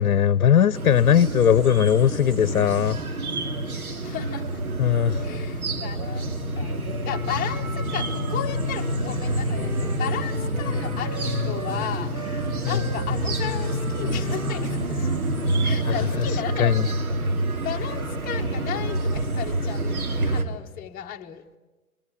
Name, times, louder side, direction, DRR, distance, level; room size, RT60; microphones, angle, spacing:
voice 1, 0.0-3.0 4.8-5.2 12.6-12.8 15.9-16.3 16.6-16.8, left 9 dB, 70° left, 0.9 m, -19 dB
sound 1, 0.7-20.4, right 1 dB, 75° right, 2.9 m, -27 dB
voice 2, 4.0-4.6 5.2-15.1 15.6-17.2 17.6-21.4, left 11 dB, 20° left, 1.4 m, -34 dB
Wind instrument woodwind instrument, 7.9-16.2, right 3 dB, 55° right, 5.4 m, -41 dB
23.5 x 22.0 x 8.4 m
hypercardioid pair, 130°, 43 cm